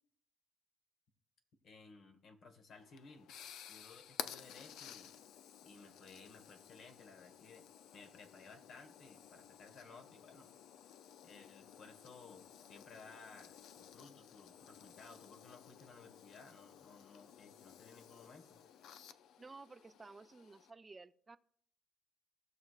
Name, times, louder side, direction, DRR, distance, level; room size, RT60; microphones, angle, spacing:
voice 1, 1.6-3.3 3.7-5.1 5.6-7.7 7.9-10.5 11.2-18.6, left 4 dB, 65° left, 1.4 m, -58 dB
sound 1, 2.7-20.7, left 9 dB, 85° left, 0.4 m, -54 dB
voice 2, 19.4-21.4, right 3 dB, 25° right, 0.5 m, -54 dB
17.5 x 6.4 x 2.4 m
cardioid pair, 90°, 0 cm